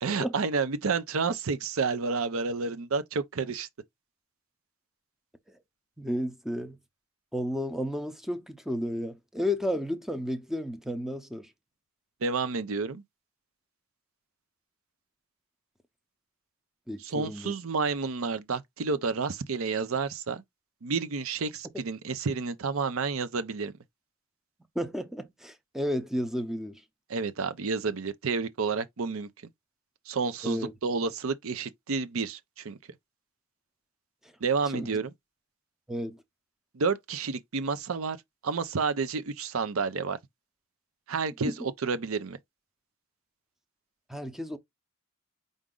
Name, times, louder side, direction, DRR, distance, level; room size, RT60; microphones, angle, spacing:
voice 1, 0.0-3.7 12.2-13.0 17.0-20.4 20.8-23.7 27.1-29.3 30.1-32.8 34.4-35.1 36.7-38.2 38.4-40.2 41.1-42.4, right 4 dB, 80° right, 0.6 m, -30 dB
voice 2, 6.0-6.8 7.3-11.5 16.9-17.5 24.8-26.8 30.4-30.7 34.7-34.9 35.9-36.2 41.4-41.5 44.1-44.6, equal, ahead, 0.6 m, -32 dB
4.8 x 2.6 x 3.7 m
head